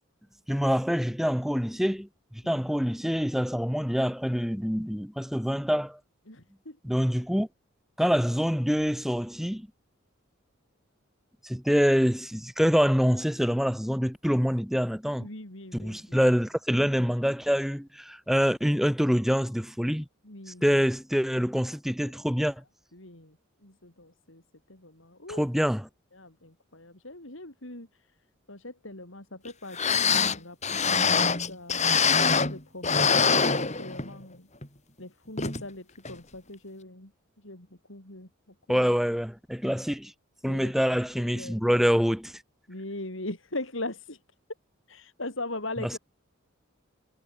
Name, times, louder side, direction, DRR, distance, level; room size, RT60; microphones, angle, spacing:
voice 1, 0.5-6.0 6.8-7.5 8.0-9.7 11.4-15.3 15.7-20.1 20.6-22.6 25.4-25.9 38.7-40.1 40.4-42.3 45.8-46.0, equal, ahead, 3.6 m, -26 dB
voice 2, 6.3-6.8 15.2-16.2 20.2-20.6 22.9-23.4 23.6-24.4 24.7-25.5 26.1-27.9 28.5-31.8 32.3-34.5 35.0-37.1 37.4-38.3 40.4-40.7 41.2-41.9 42.7-44.2 44.9-46.0, left 2 dB, 65° left, 4.9 m, -40 dB
sound 1, 29.5-29.6 29.7-32.6 32.8-34.2 34.6-34.7 35.4-35.6 36.1-36.2, left 5 dB, 35° left, 6.5 m, -24 dB
head